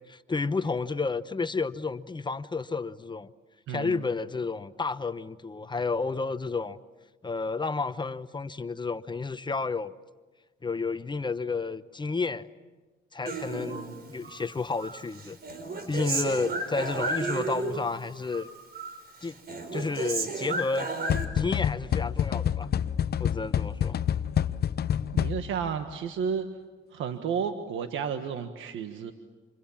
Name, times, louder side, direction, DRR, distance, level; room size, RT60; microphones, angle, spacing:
voice 1, 0.1-3.3 3.7-6.8 7.2-9.9 10.6-12.5 13.1-13.8 14.1-15.4 15.9-18.5 19.2-19.4 19.7-20.9 21.3-22.7 23.2-24.0, left 4 dB, 25° left, 12 dB, 0.9 m, -31 dB
voice 2, 3.7-4.0 13.5-13.9 25.1-26.5 26.9-29.1, right 7 dB, 80° right, 7 dB, 1.5 m, -32 dB
Human voice, 13.3-14.4 14.8-18.0 18.3-19.0 19.3-21.2, right 3 dB, 50° right, 4.7 m, -33 dB
sound 1, 21.1-25.7, left 9 dB, 55° left, 0.8 m, -28 dB
29.5 x 27.0 x 7.3 m, 1.3 s
cardioid pair, 90°, 20 cm